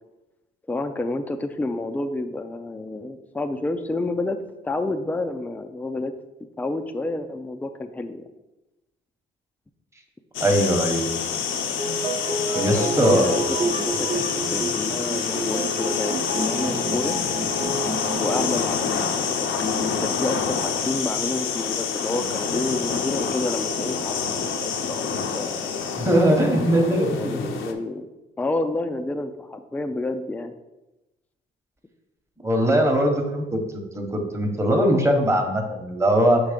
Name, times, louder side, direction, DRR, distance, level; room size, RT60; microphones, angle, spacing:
voice 1, 0.7-4.4 4.6-6.1 6.6-8.2 12.7-17.2 18.2-25.1 25.3-25.5 26.8-28.1 28.4-30.5, left 2 dB, 10° left, 7 dB, 0.4 m, -29 dB
sound 1, 10.3-27.7, left 6 dB, 80° left, 0.7 m, -27 dB
voice 2, 10.4-11.1 12.5-13.4 26.0-27.5 32.4-36.4, equal, 15° right, 2 dB, 1.1 m, -21 dB
sound 2, 11.8-18.5, right 2 dB, 35° right, 1.0 m, -29 dB
6.1 x 3.2 x 5.1 m, 1.0 s
cardioid pair, 90°, 20 cm